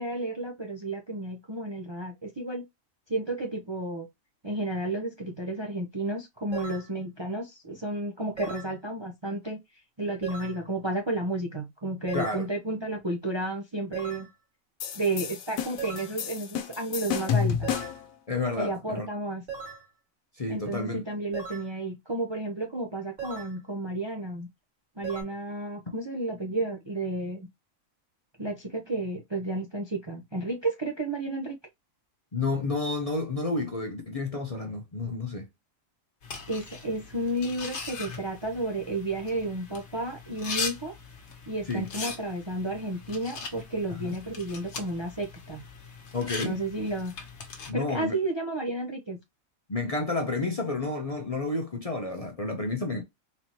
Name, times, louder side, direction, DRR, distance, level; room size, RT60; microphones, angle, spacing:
voice 1, 0.0-2.6 3.1-4.1 4.4-9.6 10.0-14.3 14.9-17.8 18.5-19.4 20.5-24.5 25.0-27.4 28.4-31.6 36.5-40.9 41.5-45.6 46.4-47.2 47.7-49.2, right 2 dB, 30° right, 0.5 m, -32 dB
sound 1, 6.5-6.9 8.4-8.7 10.2-10.6 12.1-12.4 13.9-14.3 15.8-16.2 17.6-18.0 19.5-19.9 21.3-21.7 23.2-23.6 25.0-25.2, right 5 dB, 65° right, 2.2 m, -38 dB
voice 2, 12.1-12.4 18.3-19.1 20.4-21.0 32.3-35.5 41.7-41.8 44.0-44.1 46.1-46.6 47.7-48.1 49.7-53.0, left 3 dB, 35° left, 0.6 m, -30 dB
sound 2, 14.8-18.1, left 8 dB, 85° left, 1.1 m, -30 dB
sound 3, 36.2-47.7, left 5 dB, 60° left, 1.2 m, -40 dB
4.1 x 2.9 x 2.9 m
omnidirectional pair, 1.4 m